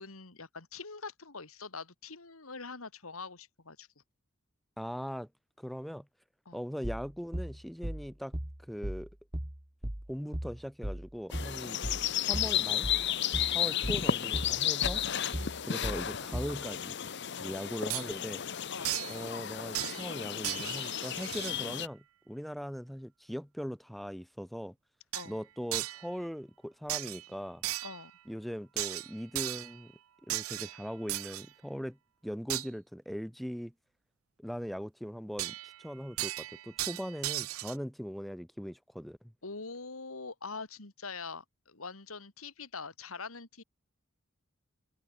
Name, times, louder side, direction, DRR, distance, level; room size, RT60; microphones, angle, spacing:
voice 1, 0.0-3.9 6.5-6.6 11.7-11.8 13.6-13.7 15.4-15.6 17.4-17.5 18.7-18.9 25.1-25.4 27.8-28.1 39.4-43.6, left 4 dB, 80° left, 2.5 m, -44 dB
voice 2, 4.8-5.3 5.6-6.1 6.5-8.3 8.7-9.1 10.1-12.0 12.3-12.9 13.5-15.0 15.6-16.9 17.4-18.4 19.1-24.7 25.3-27.6 28.3-29.9 30.3-32.0 32.2-33.7 34.4-39.2, equal, ahead, 0.6 m, -40 dB
sound 1, 6.8-16.6, right 1 dB, 25° right, 1.8 m, -37 dB
sound 2, 11.3-21.9, left 9 dB, 55° left, 0.8 m, -33 dB
sound 3, 17.9-18.1 18.8-19.2 19.7-20.2 20.4-21.6 25.1-25.3 25.7-26.1 26.9-27.3 27.6-28.1 28.8-29.8 30.3-31.5 32.5-32.7 35.4-35.8 36.2-37.8, right 17 dB, 80° right, 0.5 m, -36 dB
head